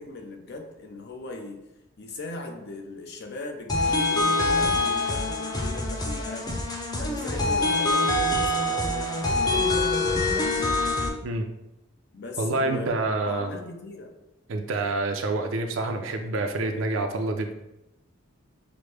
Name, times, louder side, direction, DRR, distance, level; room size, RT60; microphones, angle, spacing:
voice 1, 0.0-1.6 2.0-6.6 6.9-10.1 10.5-10.8 12.1-12.9 13.2-14.1, left 2 dB, 60° left, 3 dB, 0.7 m, -39 dB
sound 1, 3.7-11.1, left 2 dB, 20° left, 0.5 m, -25 dB
voice 2, 12.4-13.5 14.5-17.5, right 2 dB, 70° right, 4 dB, 0.5 m, -27 dB
5.9 x 2.1 x 3.3 m, 0.91 s
head